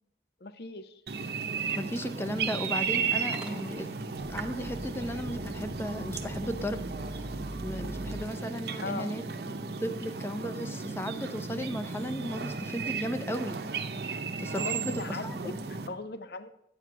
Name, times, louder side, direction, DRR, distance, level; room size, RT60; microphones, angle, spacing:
voice 1, 0.4-0.9 8.8-9.1 14.6-15.5 15.9-16.5, left 3 dB, 60° left, 11 dB, 0.6 m, -38 dB
sound 1, 1.1-15.9, right 5 dB, 65° right, 0.7 m, -35 dB
voice 2, 1.7-6.8 7.1-7.2 7.6-9.2 9.8-13.6 14.4-15.5, equal, 15° left, 8 dB, 0.6 m, -35 dB
Motor vehicle (road) / Engine starting, 3.2-8.2, right 1 dB, 5° right, 1.0 m, -43 dB
9.1 x 6.4 x 6.0 m, 0.81 s
head